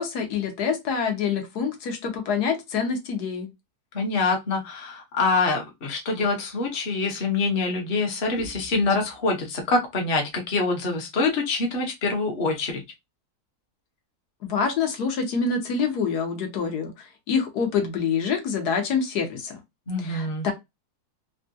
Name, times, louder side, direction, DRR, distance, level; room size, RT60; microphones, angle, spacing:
voice 1, 0.0-3.5 14.4-19.6 20.0-20.5, left 6 dB, 85° left, 4 dB, 1.4 m, -26 dB
voice 2, 3.9-12.8 19.9-20.5, left 3 dB, 45° left, 2 dB, 1.0 m, -25 dB
3.5 x 2.4 x 2.6 m, 0.20 s
omnidirectional pair, 1.6 m